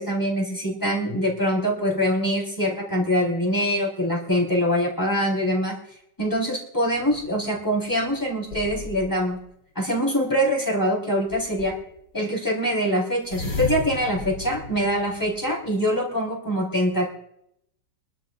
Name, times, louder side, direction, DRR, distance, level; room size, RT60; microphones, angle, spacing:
voice 1, 0.0-5.8 6.2-9.4 9.7-11.8 12.1-17.1, equal, 10° left, -2 dB, 4.6 m, -24 dB
sound 1, 6.9-9.4 11.3-12.0 13.2-15.7, left 3 dB, 65° left, 4.0 m, -35 dB
25.5 x 13.0 x 2.6 m, 0.76 s
omnidirectional pair, 1.9 m